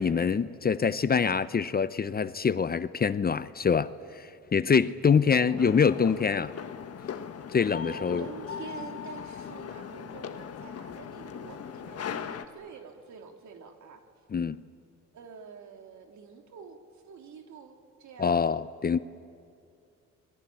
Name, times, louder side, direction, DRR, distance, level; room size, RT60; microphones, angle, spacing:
voice 1, 0.0-6.5 7.5-8.3 14.3-14.6 18.2-19.0, left 6 dB, 30° left, 0.7 m, -25 dB
voice 2, 5.2-5.8 7.8-14.0 15.1-16.8 17.1-18.4, right 6 dB, 70° right, 3.1 m, -46 dB
sound 1, 5.6-12.4, left 7 dB, 55° left, 1.5 m, -39 dB
28.5 x 22.0 x 9.1 m
cardioid pair, 90°, 30 cm